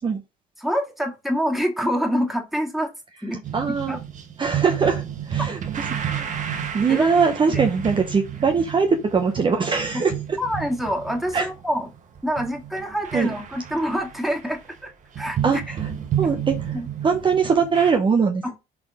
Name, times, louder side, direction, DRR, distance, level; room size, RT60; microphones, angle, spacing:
voice 1, 0.6-2.9 3.2-3.4 3.9-4.0 6.9-7.2 7.5-7.6 10.4-11.9 12.2-14.9 15.2-15.6 16.7-16.9 18.4-18.5, equal, ahead, 2 dB, 2.0 m, -26 dB
sound 1, 3.4-14.8 15.1-17.9, right 9 dB, 45° right, 1.4 m, -31 dB
voice 2, 3.5-4.0 4.4-6.3 6.7-10.4 11.3-11.5 13.1-13.3 15.4-15.9 16.2-18.5, right 5 dB, 30° right, 4 dB, 0.9 m, -22 dB
6.1 x 4.1 x 4.9 m, 0.25 s
cardioid pair, 110°, 17 cm